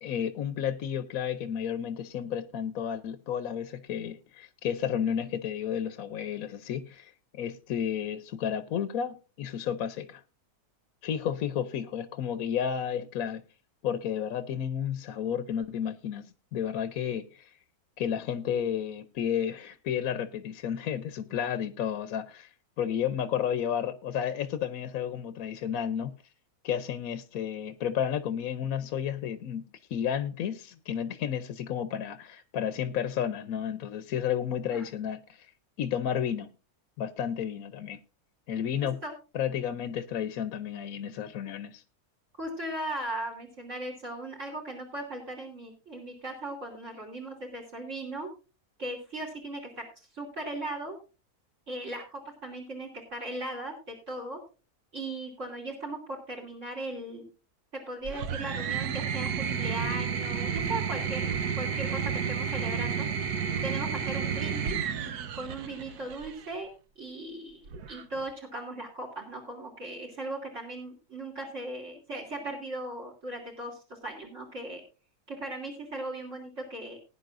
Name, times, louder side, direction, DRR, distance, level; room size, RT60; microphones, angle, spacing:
voice 1, 0.0-10.2 11.0-13.4 13.8-17.5 18.0-22.5 22.8-26.2 26.6-35.5 35.8-36.5 37.0-38.0 38.5-39.0 39.3-41.8, left 9 dB, 70° left, 1.1 m, -32 dB
voice 2, 42.4-48.3 48.8-51.0 51.7-54.4 54.9-57.3 57.7-62.0 62.3-63.1 63.6-64.8 65.3-66.7 67.0-67.6 67.9-74.8 75.3-77.0, right 1 dB, 50° right, 3.1 m, -38 dB
sound 1, 58.0-66.5 67.7-68.3, right 7 dB, 90° right, 1.4 m, -31 dB
19.0 x 10.0 x 2.5 m
omnidirectional pair, 1.6 m